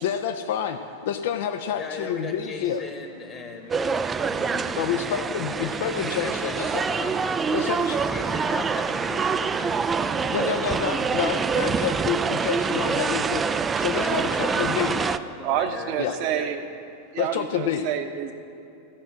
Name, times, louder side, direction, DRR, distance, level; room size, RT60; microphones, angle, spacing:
voice 1, 0.0-2.8 4.7-6.8 7.5-8.0 10.3-15.0 16.0-16.2 17.2-17.9, left 8 dB, 55° left, 6 dB, 0.5 m, -28 dB
voice 2, 1.8-4.9 5.2-5.7 6.2-10.6 13.9-16.5, left 4 dB, 25° left, 3 dB, 1.3 m, -38 dB
sound 1, 3.7-15.2, right 5 dB, 20° right, 0.3 m, -26 dB
voice 3, 15.4-16.6 17.1-18.3, right 9 dB, 45° right, 7 dB, 0.9 m, -28 dB
15.0 x 6.1 x 7.5 m, 2.8 s
figure-of-eight pair, 90°, 0 cm